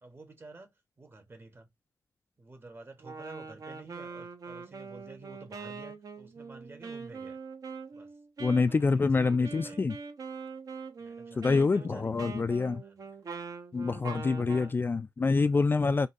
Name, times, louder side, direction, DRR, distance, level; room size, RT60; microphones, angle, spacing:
voice 1, 0.0-1.7 2.4-7.4 7.9-8.1 8.8-9.8 11.0-12.3 12.8-13.1 14.4-14.7 15.3-15.6 15.8-16.0, right 2 dB, 30° right, 1.0 m, -50 dB
Wind instrument woodwind instrument, 3.0-14.8, right 5 dB, 55° right, 0.8 m, -43 dB
voice 2, 8.4-10.0 11.4-12.8 13.7-16.1, left 4 dB, 30° left, 0.3 m, -26 dB
3.9 x 2.3 x 2.6 m
cardioid pair, 70°, 7 cm